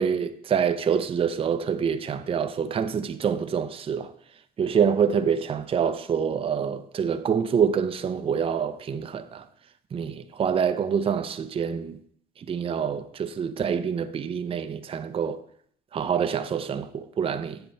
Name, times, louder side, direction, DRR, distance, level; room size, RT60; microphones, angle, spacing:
voice 1, 0.0-4.1 4.6-9.4 9.9-12.0 12.5-15.4 15.9-17.6, right 7 dB, 35° right, 0.6 m, -26 dB
7.4 x 4.5 x 6.9 m
cardioid pair, 110°, 17 cm